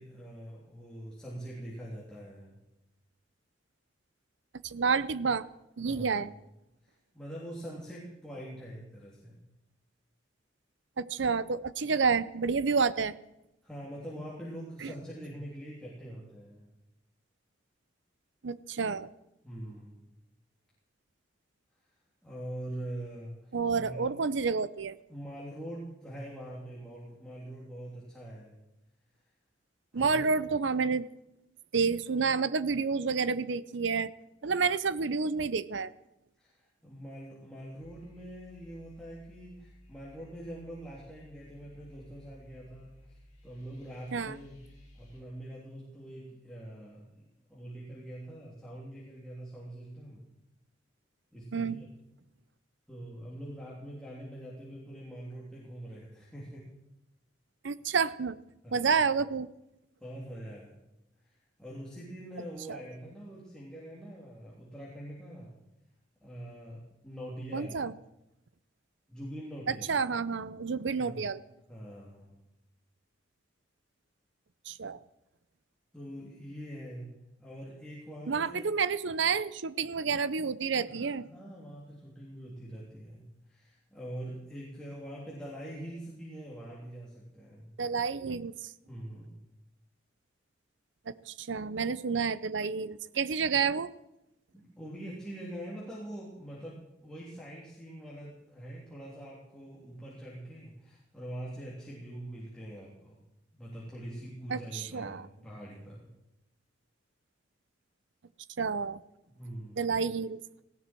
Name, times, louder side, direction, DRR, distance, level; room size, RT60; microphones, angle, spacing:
voice 1, 0.0-2.6 5.8-6.2 6.8-9.4 13.6-16.7 19.4-20.0 22.2-24.0 25.1-28.6 29.9-30.3 36.4-43.1 43.4-44.6 44.9-50.2 51.3-51.9 52.9-56.7 58.6-59.0 60.0-60.8 61.6-65.5 66.2-67.8 69.1-69.9 71.0-71.2 71.7-72.4 75.9-77.1 77.4-78.7 80.9-87.7 88.9-89.3 94.5-103.2 103.5-106.1 109.3-109.9, right 1 dB, 5° left, -7 dB, 3.2 m, -44 dB
voice 2, 4.6-5.4 5.8-6.3 11.0-13.1 14.8-14.9 18.4-19.1 23.5-25.0 29.9-31.0 31.7-34.1 34.4-35.9 44.1-44.4 51.5-51.8 57.6-58.4 58.7-59.5 67.5-67.9 69.7-71.4 74.7-75.0 78.3-81.3 87.8-88.5 91.3-93.9 104.5-105.3 108.6-109.0 109.8-110.4, right 5 dB, 70° right, 16 dB, 0.6 m, -29 dB
sound 1, 37.8-45.2, equal, 35° left, 5.3 m, -56 dB
18.5 x 16.0 x 4.6 m, 0.89 s
head